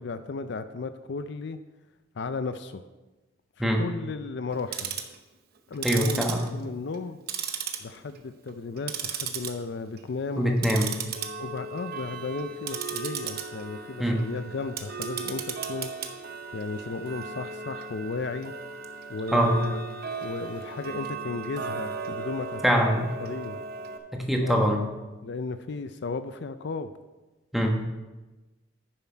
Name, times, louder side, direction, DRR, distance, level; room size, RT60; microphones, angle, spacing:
voice 1, 0.0-1.6 2.2-2.8 3.6-5.0 5.7-7.2 7.8-10.6 11.4-15.9 16.5-18.5 19.1-19.8 20.2-23.6 24.4-24.7 25.2-26.9, left 4 dB, 60° left, 11 dB, 0.4 m, -34 dB
Tick-tock, 4.5-5.2 5.7-7.0 7.3-8.2 8.5-9.5 9.9-10.1 10.6-24.0, right 6 dB, 55° right, 0.9 m, -36 dB
voice 2, 5.8-6.4 10.3-11.0 14.0-14.3 19.3-19.6 22.6-23.1 24.1-24.8 27.5-27.9, equal, ahead, 1 dB, 1.1 m, -23 dB
10.0 x 7.2 x 4.5 m, 1.1 s
head